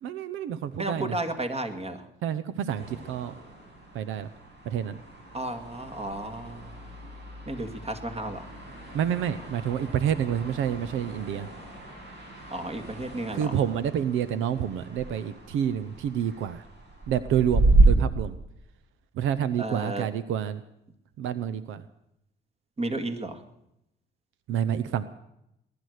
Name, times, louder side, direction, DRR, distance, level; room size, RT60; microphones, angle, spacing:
voice 1, 0.0-1.1 2.2-3.4 3.9-4.3 4.6-5.0 8.9-11.5 13.3-16.6 17.1-18.3 19.2-20.6 21.2-21.8 24.5-25.0, right 9 dB, 85° right, 14 dB, 0.7 m, -28 dB
voice 2, 0.8-2.1 5.3-6.8 7.5-8.5 12.5-13.6 19.6-20.1 22.8-23.4, right 2 dB, 30° right, 7 dB, 2.1 m, -33 dB
sound 1, 2.7-17.8, right 2 dB, 65° right, 6.7 m, -31 dB
20.0 x 11.0 x 6.5 m, 0.83 s
cardioid pair, 90°, 20 cm